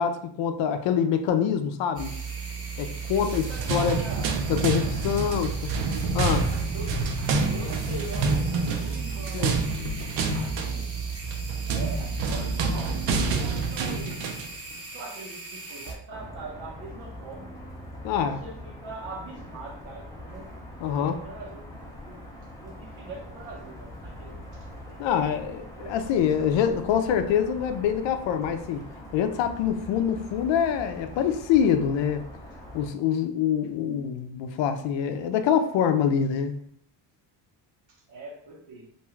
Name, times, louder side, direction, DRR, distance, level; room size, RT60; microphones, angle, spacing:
voice 1, 0.0-2.1 2.8-3.4 3.7-4.0 4.5-5.5 6.1-6.5 9.3-9.5 18.0-18.4 20.8-21.2 25.0-28.8 29.1-32.2 32.7-36.6, left 8 dB, 70° left, 8 dB, 0.5 m, -25 dB
sound 1, 2.0-15.9, right 5 dB, 30° right, 0.8 m, -35 dB
sound 2, 3.1-14.6, right 3 dB, 70° right, 0.6 m, -28 dB
voice 2, 3.2-4.3 5.2-5.4 6.7-9.6 10.3-10.9 11.7-14.2 14.9-17.5 18.1-20.5 20.9-21.6 22.0-22.2 22.6-25.0 25.6-26.0 37.9-38.9, right 3 dB, 90° right, -1 dB, 1.0 m, -42 dB
sound 3, 16.1-32.9, left 1 dB, 10° left, 0.5 m, -43 dB
2.6 x 2.3 x 3.1 m, 0.65 s
cardioid pair, 100°, 47 cm